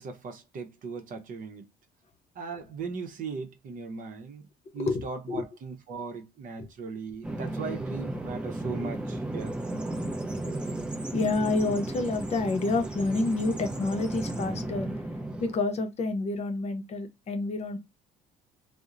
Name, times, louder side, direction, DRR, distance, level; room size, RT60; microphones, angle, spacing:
voice 1, 0.0-1.7 2.3-4.5 4.7-9.5, right 4 dB, 50° right, 0.7 m, -38 dB
voice 2, 4.8-5.4 6.6-6.7 11.1-14.9 15.4-17.8, left 3 dB, 40° left, 0.6 m, -29 dB
Bird vocalization bird call bird song, 7.2-15.6, right 1 dB, 5° right, 0.5 m, -34 dB
2.8 x 2.0 x 2.4 m
cardioid pair, 110°, 17 cm